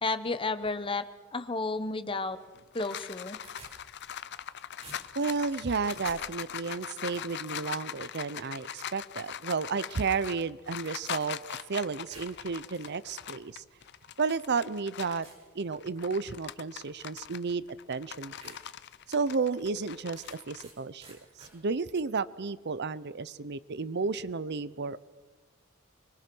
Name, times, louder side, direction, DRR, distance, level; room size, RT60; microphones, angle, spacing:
voice 1, 0.0-1.0 1.3-2.4 2.7-3.4, left 3 dB, 25° left, 11 dB, 1.0 m, -32 dB
sound 1, 2.3-15.3 15.7-20.6, left 9 dB, 55° left, 0.7 m, -41 dB
sound 2, 3.4-4.5 4.8-6.2 11.2-11.6 11.9-12.9 13.8-13.9 14.5-14.6 15.2-15.5 16.0-16.3 17.5-17.6 18.0-18.1 18.4-18.6 19.0-19.1 20.2-20.7 21.0-21.5, right 3 dB, 30° right, 6.5 m, -52 dB
voice 2, 5.2-11.4 11.7-13.6 14.2-15.3 15.5-18.6 19.1-25.0, right 4 dB, 55° right, 17 dB, 0.7 m, -32 dB
25.0 x 23.0 x 6.2 m, 1.3 s
head